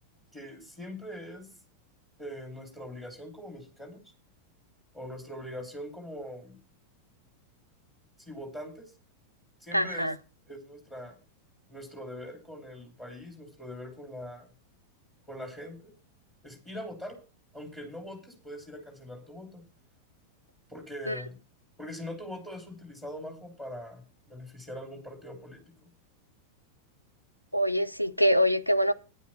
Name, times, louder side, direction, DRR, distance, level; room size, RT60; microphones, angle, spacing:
voice 1, 0.3-1.5 2.2-4.0 4.9-6.6 8.2-8.9 9.6-10.1 10.5-11.2 11.7-14.5 15.3-15.9 16.4-17.2 17.5-19.6 20.7-21.4 21.8-25.9, left 1 dB, 10° left, 3.0 m, -42 dB
voice 2, 9.7-10.1 21.1-21.2 27.5-28.9, equal, 90° left, 0.6 m, -24 dB
9.8 x 8.2 x 5.8 m
figure-of-eight pair, 90°, 0 cm